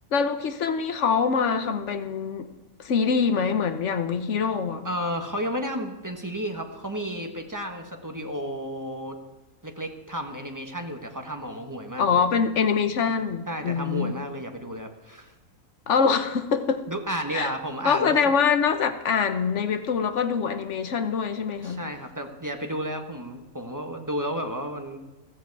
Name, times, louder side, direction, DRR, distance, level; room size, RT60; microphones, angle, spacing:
voice 1, 0.1-2.5 2.8-4.8 12.0-14.1 15.9-16.8 17.3-17.5 17.8-21.8, left 6 dB, 55° left, 9 dB, 1.3 m, -24 dB
voice 2, 4.8-9.2 9.6-12.2 13.5-15.3 16.9-18.3 21.6-25.0, equal, 15° right, 4 dB, 1.3 m, -32 dB
15.5 x 13.5 x 4.7 m, 1.2 s
omnidirectional pair, 1.6 m